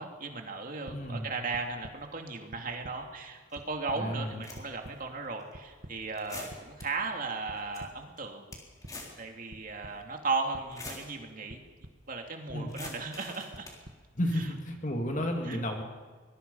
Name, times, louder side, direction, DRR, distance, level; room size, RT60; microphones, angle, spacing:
voice 1, 0.0-8.5 9.2-11.6 12.1-13.7 14.3-14.5 15.4-15.6, right 3 dB, 45° right, 3 dB, 2.6 m, -36 dB
sound 1, 0.8-1.0 1.5-1.9 2.5-2.9 3.3-4.0 4.5-4.9 5.5-5.9 6.5-6.9 7.5-7.9 8.5-8.9 9.5-9.9 10.5-10.9 11.5-11.9 12.5-12.9 13.5-13.9, right 1 dB, 65° right, 1.8 m, -47 dB
voice 2, 0.9-1.3 4.0-4.4 12.5-12.7 14.2-15.8, equal, 40° left, 3 dB, 2.3 m, -32 dB
sound 2, 3.5-3.6 4.2-4.9 5.4-5.5 6.2-6.8 7.3-7.4 7.6-7.8 8.2-9.2 9.5-9.6 10.5-11.1 12.7-13.8, left 2 dB, 15° left, 3.7 m, -44 dB
24.5 x 21.5 x 5.6 m, 1.5 s
head